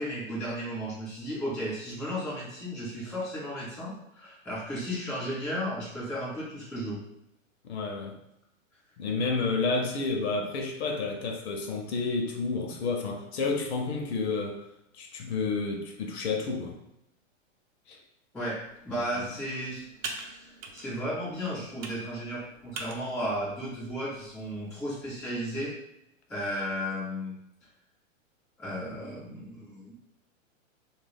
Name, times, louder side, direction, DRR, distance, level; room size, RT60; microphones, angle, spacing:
voice 1, 0.0-7.0 18.3-19.8 20.2-25.7 26.3-27.4 28.6-29.9, equal, ahead, -15 dB, 0.3 m, -34 dB
voice 2, 7.6-8.2 9.0-14.6 14.9-16.8 17.9-18.0 18.9-19.3, left 4 dB, 55° left, 3 dB, 0.6 m, -30 dB
Computer keyboard, 18.6-25.4, right 4 dB, 75° right, 0.7 m, -45 dB
2.4 x 2.1 x 3.3 m, 0.80 s
hypercardioid pair, 160°, 40 cm